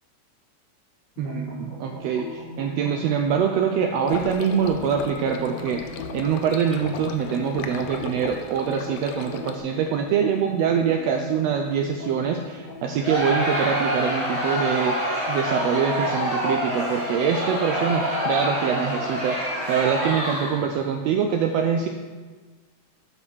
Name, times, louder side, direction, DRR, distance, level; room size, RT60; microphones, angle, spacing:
sound 1, 1.2-13.9, left 1 dB, 35° left, 2.9 m, -38 dB
voice 1, 1.2-5.8 6.1-15.0 15.3-21.9, right 7 dB, 90° right, 4 dB, 1.4 m, -24 dB
sound 2, 4.1-9.6, left 6 dB, 90° left, 2.2 m, -36 dB
Crowd, 13.0-20.7, equal, 25° right, 1.9 m, -26 dB
8.4 x 5.4 x 6.2 m, 1.4 s
omnidirectional pair, 3.5 m